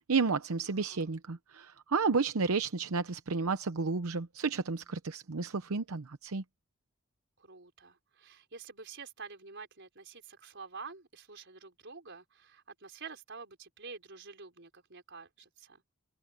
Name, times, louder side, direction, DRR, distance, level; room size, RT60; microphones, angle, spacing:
voice 1, 0.1-6.4, right 4 dB, 85° right, 0.8 m, -31 dB
voice 2, 0.7-1.1 7.4-15.8, right 4 dB, 55° right, 5.1 m, -48 dB
open air
head